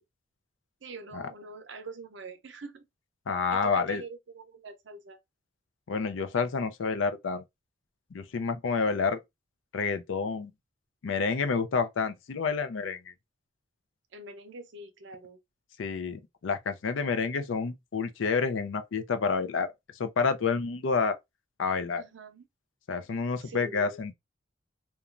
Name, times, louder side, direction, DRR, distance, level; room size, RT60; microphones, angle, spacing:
voice 1, 0.8-2.9 3.5-5.2 14.1-15.4 22.0-22.5 23.4-24.0, right 3 dB, 65° right, 0.6 m, -44 dB
voice 2, 3.3-4.0 5.9-7.4 8.1-9.2 9.7-10.5 11.0-13.0 15.8-19.7 20.0-21.2 21.6-22.0 22.9-24.1, left 5 dB, 75° left, 0.4 m, -29 dB
2.9 x 2.3 x 2.4 m
head